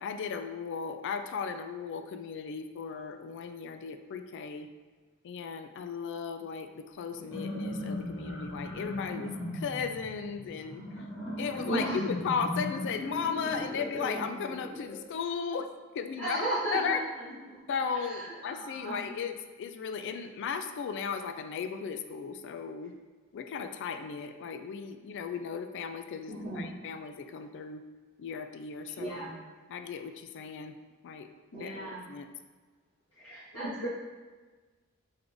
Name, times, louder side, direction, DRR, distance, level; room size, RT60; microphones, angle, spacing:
voice 1, 0.0-4.7 5.2-10.8 11.4-15.7 15.9-17.0 17.7-22.9 23.3-27.8 28.2-29.4 29.7-30.8 31.0-31.3 31.6-32.3, left 6 dB, 55° left, 8 dB, 0.3 m, -36 dB
sound 1, 7.1-15.0, left 1 dB, 10° right, 1.3 m, -38 dB
voice 2, 11.6-12.0 16.2-17.0 17.5-17.6 17.9-19.0 26.3-26.7 29.0-29.3 31.5-32.0 33.2-33.9, right 1 dB, 90° left, -11 dB, 1.3 m, -35 dB
3.7 x 3.6 x 3.4 m, 1.3 s
head